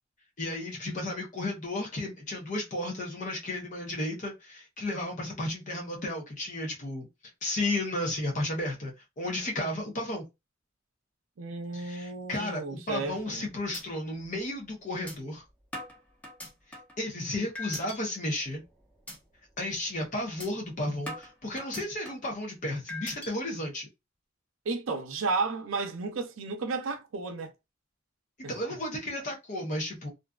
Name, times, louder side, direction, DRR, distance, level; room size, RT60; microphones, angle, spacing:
voice 1, 0.4-7.1 7.4-10.2 11.7-15.4 17.0-18.6 19.6-23.9 28.4-30.1, left 1 dB, 40° left, 0.7 m, -33 dB
voice 2, 11.4-13.5 24.7-27.5 28.4-28.5, right 4 dB, 90° right, 0.5 m, -33 dB
sound 1, 13.3-13.4 13.7-13.8 14.2-14.3 15.1-15.2 15.7-17.0 17.5-18.0 18.4-18.6 19.1-19.2 19.6-19.8 20.4-20.5 21.1-22.3 22.9-23.3, left 1 dB, 5° left, 0.8 m, -41 dB
2.5 x 2.3 x 2.3 m
head